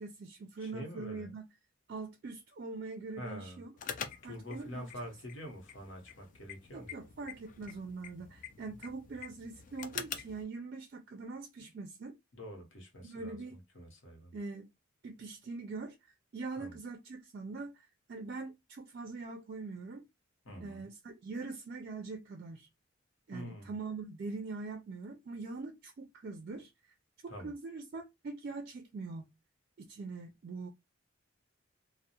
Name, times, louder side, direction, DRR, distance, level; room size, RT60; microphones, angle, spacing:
voice 1, 0.0-1.4 1.9-3.7 4.2-4.8 6.7-12.2 13.0-13.6 14.3-14.7 15.0-20.1 20.6-22.7 23.3-26.7 27.2-29.3 29.8-30.7, right 3 dB, 50° right, 0.3 m, -43 dB
voice 2, 0.6-1.3 3.2-3.6 4.2-6.9 11.6-11.7 12.3-14.4 16.6-16.8 20.4-20.9 23.3-23.7 27.3-27.5, equal, 70° left, 0.9 m, -46 dB
sound 1, 3.8-10.4, left 7 dB, 40° left, 0.3 m, -46 dB
2.2 x 2.0 x 2.8 m
head